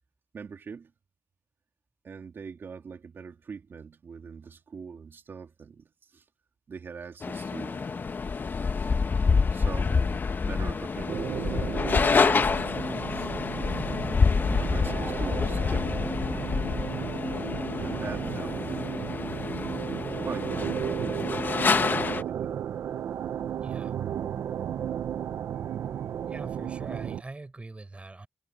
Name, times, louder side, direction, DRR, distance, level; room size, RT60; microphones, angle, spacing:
voice 1, 0.3-0.9 2.0-6.2 6.7-8.0 9.5-12.0 13.1-13.3 14.0-16.2 17.8-19.2 20.2-20.8 21.9-22.5, right 5 dB, 65° right, 3.1 m, -42 dB
sound 1, 7.2-22.2, left 5 dB, 50° left, 1.3 m, -27 dB
sound 2, 11.1-27.2, right 9 dB, 85° right, 0.8 m, -34 dB
voice 2, 23.6-23.9 26.3-28.3, right 2 dB, 30° right, 4.7 m, -42 dB
cardioid pair, 55°, 4 cm